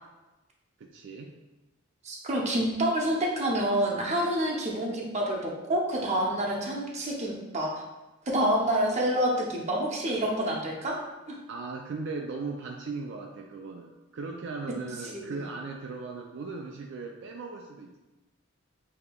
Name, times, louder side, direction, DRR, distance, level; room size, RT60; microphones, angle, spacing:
voice 1, 0.8-1.3 11.5-18.0, right 4 dB, 60° right, 1 dB, 0.3 m, -38 dB
voice 2, 2.0-7.8 8.3-11.0 11.3-11.4 15.1-15.3, right 1 dB, 35° right, -1 dB, 0.7 m, -28 dB
6.7 x 2.8 x 2.3 m, 1.1 s
head